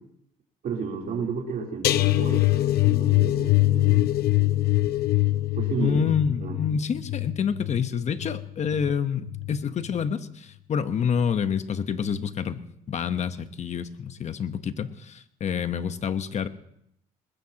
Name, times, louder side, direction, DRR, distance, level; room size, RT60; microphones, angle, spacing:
voice 1, 0.6-2.5 2.9-4.6 5.6-6.0 6.4-6.6, right 5 dB, 55° right, -1 dB, 3.6 m, -32 dB
sound 1, 1.8-8.9 9.3-9.6 9.9-10.0, left 16 dB, 70° left, 0.7 m, -23 dB
voice 2, 5.8-16.5, left 7 dB, 45° left, 10 dB, 1.1 m, -28 dB
22.0 x 20.5 x 3.0 m, 0.73 s
cardioid pair, 110°, 17 cm